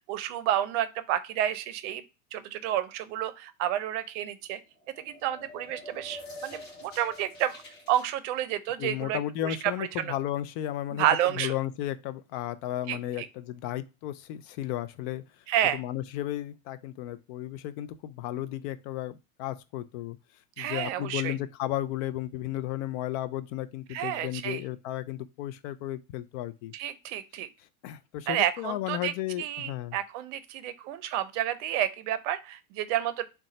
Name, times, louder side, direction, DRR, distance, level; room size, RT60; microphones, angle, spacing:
voice 1, 0.1-2.0 2.3-4.6 5.0-7.6 7.9-10.1 11.0-11.5 12.9-13.3 15.5-15.8 20.6-21.3 23.9-24.6 26.7-27.5 28.3-33.2, right 11 dB, 60° right, 0.6 m, -30 dB
sound 1, 4.7-8.1, left 1 dB, 25° left, 1.2 m, -45 dB
voice 2, 8.8-15.2 15.7-20.2 20.6-26.7 27.8-30.0, left 13 dB, 50° left, 0.5 m, -34 dB
3.7 x 2.3 x 4.1 m
hypercardioid pair, 110°, 42 cm